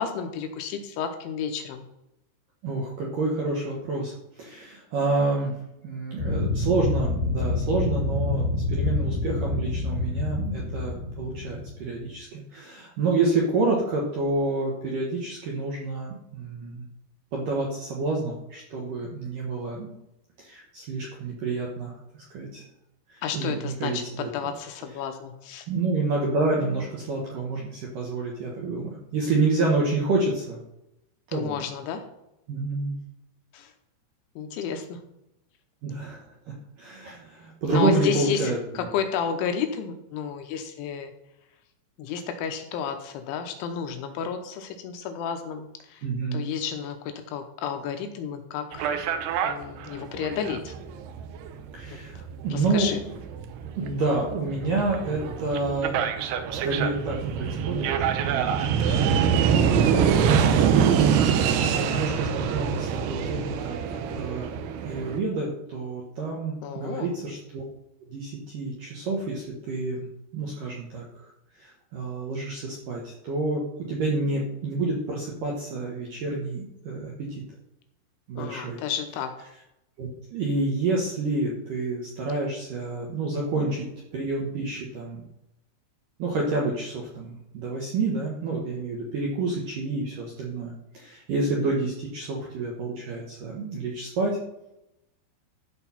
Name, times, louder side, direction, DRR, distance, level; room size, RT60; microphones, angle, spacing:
voice 1, 0.0-1.8 23.2-25.7 31.3-32.0 33.5-33.7 34.4-35.0 37.7-41.1 42.0-46.1 46.3-48.9 49.4-50.7 52.5-53.0 66.6-67.1 78.4-79.3, left 7 dB, 80° left, 5 dB, 3.0 m, -32 dB
voice 2, 2.6-5.5 5.8-16.8 17.3-19.9 20.4-21.9 22.3-22.6 23.1-24.3 25.7-30.6 31.3-31.6 32.5-32.9 35.8-36.2 36.5-38.6 46.0-46.5 51.7-52.9 53.8-56.0 56.5-57.9 58.2-58.7 59.7-60.5 61.5-64.5 64.8-67.6 68.1-70.1 70.3-71.0 71.6-77.4 78.3-78.8 80.0-85.2 86.2-94.4, right 3 dB, 70° right, -2 dB, 2.1 m, -28 dB
sound 1, 6.2-12.0, left 2 dB, 55° left, 3.3 m, -27 dB
sound 2, 48.7-65.2, right 7 dB, 85° right, 2.3 m, -25 dB
13.0 x 4.8 x 5.7 m, 0.86 s
omnidirectional pair, 5.9 m